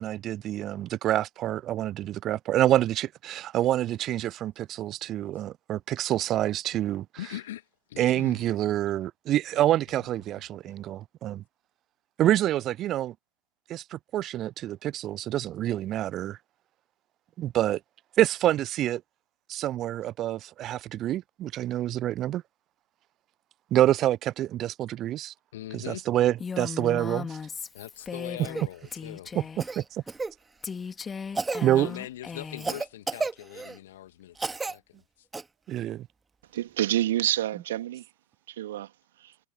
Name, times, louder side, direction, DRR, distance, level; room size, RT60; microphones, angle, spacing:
voice 1, 0.0-7.1 8.0-11.4 12.2-13.1 13.7-16.4 17.4-17.8 18.2-19.0 19.5-22.4 23.7-25.3 25.7-27.4 29.8-30.0 31.6-31.9 35.7-36.1, right 13 dB, 30° right, 0.3 m, -27 dB
voice 2, 7.2-8.5 25.5-26.1 27.7-29.3 31.7-35.3, left 13 dB, 55° left, 2.1 m, -41 dB
Female speech woman speaking, 26.4-28.7 28.9-29.7 30.6-32.8, left 5 dB, 15° left, 2.9 m, -37 dB
Cough, 28.4-28.7 29.6-30.3 31.3-31.7 32.6-33.8 34.4-34.8 35.3-35.4 37.3-37.4, right 3 dB, 10° right, 2.0 m, -32 dB
voice 3, 36.5-38.0 38.5-38.9 39.2-39.3, right 13 dB, 55° right, 2.8 m, -28 dB
figure-of-eight pair, 90°, 0 cm